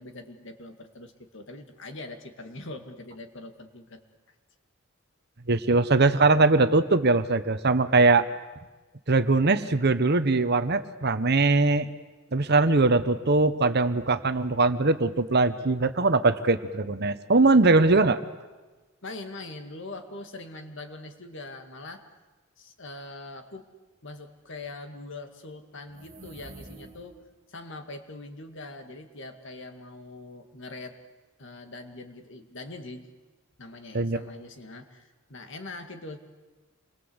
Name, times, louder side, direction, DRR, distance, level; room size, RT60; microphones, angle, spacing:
voice 1, 0.0-4.0 19.0-22.1 22.6-23.7 24.0-27.2 27.5-31.0 31.4-33.1 33.6-36.2, left 2 dB, 60° left, 7 dB, 2.2 m, -42 dB
voice 2, 5.5-8.2 9.1-11.9 12.3-18.2 33.9-34.2, right 3 dB, 50° right, 11 dB, 1.1 m, -21 dB
sound 1, 25.8-27.4, right 2 dB, 30° right, 2.3 m, -47 dB
27.5 x 22.0 x 8.0 m, 1.2 s
head